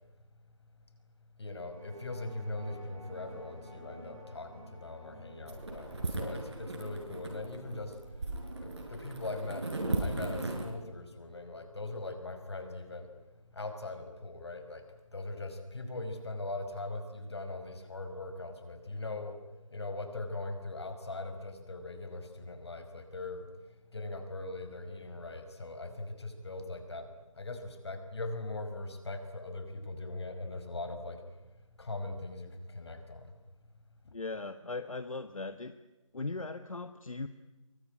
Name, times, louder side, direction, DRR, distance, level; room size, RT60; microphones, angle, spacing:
voice 1, 1.3-9.7 10.0-14.9 15.1-19.4 19.7-31.4 31.8-33.4 34.0-34.2, left 2 dB, 50° left, 8 dB, 5.0 m, -41 dB
sound 1, 1.6-10.3, right 1 dB, 15° right, 3.7 m, -53 dB
sound 2, 5.5-10.7, right 2 dB, 55° right, 6.9 m, -37 dB
voice 2, 34.1-35.8 36.1-37.3, left 3 dB, 75° left, 10 dB, 1.3 m, -38 dB
23.5 x 22.5 x 9.9 m, 1.1 s
figure-of-eight pair, 170°, 17 cm